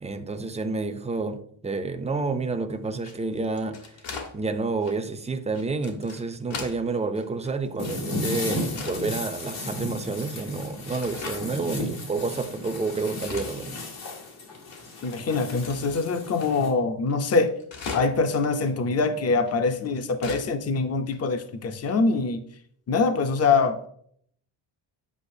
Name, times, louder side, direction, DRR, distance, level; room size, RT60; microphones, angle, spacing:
voice 1, 0.0-4.0 4.3-13.7, right 3 dB, 15° right, 0.5 m, -29 dB
sound 1, 2.9-4.3 4.8-5.0 5.5-6.8 7.2-8.2 8.5-9.0 9.6-9.7 10.3-10.7 11.0-11.4 11.9-12.0 12.5-14.1 14.3-14.4 14.7-16.0 16.4-16.5 16.8-16.9 17.1-18.3 18.7-18.8 19.5-20.5 20.8-20.9 21.1-21.2 21.9-22.1, left 4 dB, 65° left, 1.5 m, -39 dB
sound 2, 7.8-16.7, left 1 dB, 85° left, 2.2 m, -34 dB
voice 2, 15.0-17.5 17.9-22.4 22.9-23.9, left 4 dB, 30° left, 0.6 m, -24 dB
8.3 x 5.5 x 2.7 m
cardioid pair, 130°, 49 cm